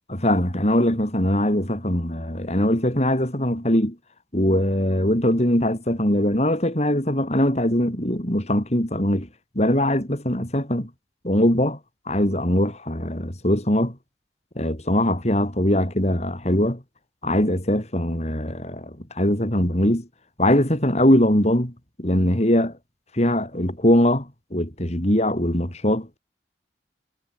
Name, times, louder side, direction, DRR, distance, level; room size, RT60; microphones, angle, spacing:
voice 1, 0.1-4.0 4.3-9.3 9.5-10.9 11.2-11.8 12.1-14.0 14.5-16.8 17.2-20.1 20.4-21.7 22.0-22.8 23.1-26.2, left 1 dB, 40° left, 4.8 m, -21 dB
head